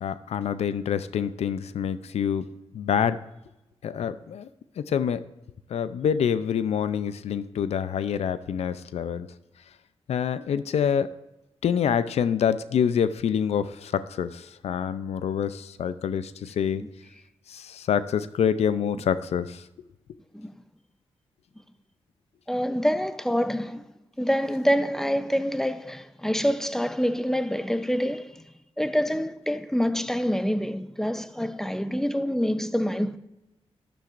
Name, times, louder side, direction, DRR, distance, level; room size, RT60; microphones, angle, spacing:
voice 1, 0.0-2.4 2.7-3.2 3.8-4.5 4.8-5.2 5.7-9.3 10.1-11.1 11.6-16.8 17.5-19.6, left 8 dB, 85° left, 0.5 m, -26 dB
voice 2, 22.5-23.8 24.2-28.3 28.8-33.2, equal, 5° left, 0.6 m, -26 dB
12.5 x 10.5 x 2.5 m
cardioid pair, 85°, 11 cm